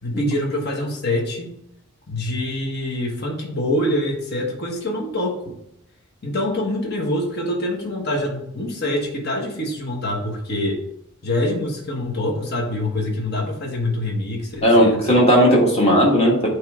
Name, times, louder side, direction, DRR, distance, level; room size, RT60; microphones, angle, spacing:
voice 1, 0.0-1.5 2.1-5.6 6.2-10.8 11.2-15.2, left 1 dB, 50° left, 0 dB, 1.2 m, -25 dB
voice 2, 14.6-16.5, equal, 30° left, -2 dB, 1.6 m, -15 dB
8.0 x 3.2 x 3.6 m, 0.76 s
head